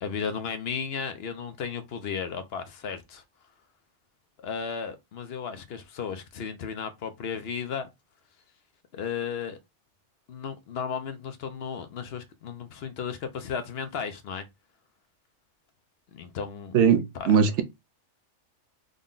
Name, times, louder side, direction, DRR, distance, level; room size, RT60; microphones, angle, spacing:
voice 1, 0.0-3.2 4.4-7.9 8.9-9.6 10.3-14.5 16.1-16.8 17.1-17.6, left 6 dB, 65° left, 0.8 m, -34 dB
voice 2, 16.7-17.6, right 7 dB, 75° right, 0.9 m, -20 dB
3.8 x 2.1 x 3.6 m
omnidirectional pair, 1.2 m